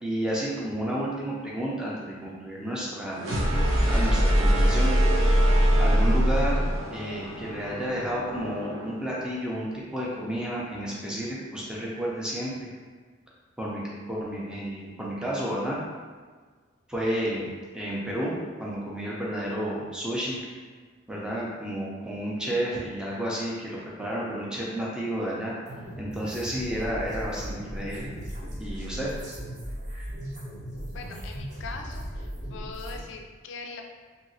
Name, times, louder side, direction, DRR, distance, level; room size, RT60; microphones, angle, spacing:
voice 1, 0.0-3.3 3.9-5.0 5.8-12.7 13.6-13.8 14.1-15.8 16.9-20.4 21.1-25.5 26.0-28.1 28.6-29.1, equal, 5° right, -6 dB, 0.5 m, -31 dB
sound 1, 3.2-9.0, equal, 80° right, 0.8 m, -23 dB
sound 2, 25.7-33.0, equal, 35° right, 0.8 m, -37 dB
voice 2, 30.9-33.8, left 4 dB, 60° left, 3 dB, 0.3 m, -41 dB
3.0 x 2.7 x 2.7 m, 1.5 s
head